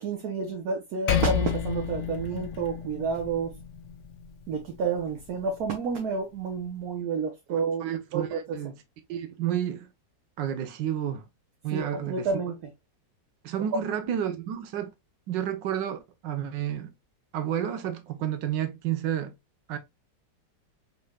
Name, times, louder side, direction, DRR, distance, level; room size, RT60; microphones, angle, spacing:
voice 1, 0.0-3.5 4.5-7.8 8.1-8.6 11.7-12.7 13.6-13.8, right 5 dB, 65° right, 1.2 m, -30 dB
Percussion, 1.1-5.9, left 8 dB, 80° left, 1.4 m, -32 dB
voice 2, 7.5-8.3 8.5-8.7 9.1-9.9 10.4-11.2 11.6-12.3 13.4-14.9 15.3-16.9 17.3-19.3 19.7-19.8, right 10 dB, 85° right, 1.4 m, -30 dB
5.4 x 3.3 x 2.3 m
omnidirectional pair, 1.9 m